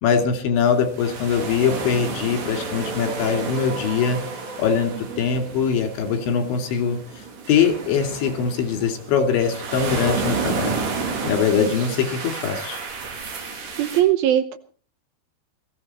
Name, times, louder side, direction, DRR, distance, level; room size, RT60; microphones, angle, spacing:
voice 1, 0.0-4.2 4.6-7.0 7.5-10.7 11.2-12.8, left 6 dB, 80° left, 6 dB, 4.8 m, -22 dB
sound 1, 0.6-14.0, right 4 dB, 65° right, 5.3 m, -31 dB
sound 2, 1.8-7.8, right 1 dB, 45° right, 4.4 m, -40 dB
voice 2, 4.9-5.2 11.6-11.7 13.8-14.6, right 12 dB, 80° right, 10 dB, 2.2 m, -21 dB
20.5 x 15.5 x 4.3 m, 0.44 s
omnidirectional pair, 5.3 m